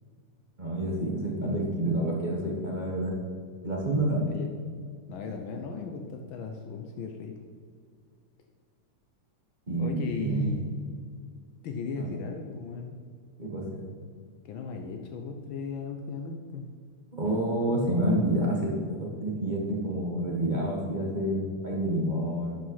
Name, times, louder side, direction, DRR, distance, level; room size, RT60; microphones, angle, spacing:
voice 1, 0.6-3.1 3.6-4.3 9.7-10.5 12.0-12.1 13.4-13.8 17.1-22.5, right 1 dB, 25° right, -2 dB, 1.4 m, -28 dB
voice 2, 5.1-7.4 9.8-10.6 11.6-12.9 14.4-16.7, left 5 dB, 70° left, 3 dB, 1.5 m, -37 dB
11.5 x 5.6 x 5.6 m, 2.1 s
omnidirectional pair, 2.4 m